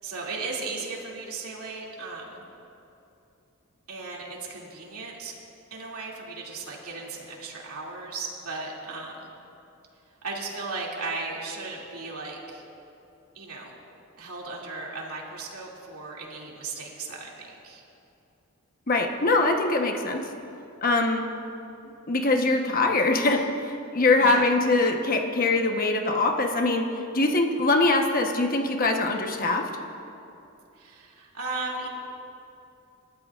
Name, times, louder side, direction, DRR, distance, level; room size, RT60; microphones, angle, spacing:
voice 1, 0.0-2.4 3.9-5.3 5.7-9.3 10.2-12.6 13.3-13.7 14.2-17.8 24.2-24.5 30.8-31.9, right 3 dB, 85° right, -3 dB, 2.6 m, -36 dB
voice 2, 18.9-20.3 20.8-21.2 22.1-26.9 27.1-29.7, left 2 dB, 40° left, 3 dB, 1.1 m, -23 dB
29.0 x 13.0 x 2.5 m, 2.8 s
head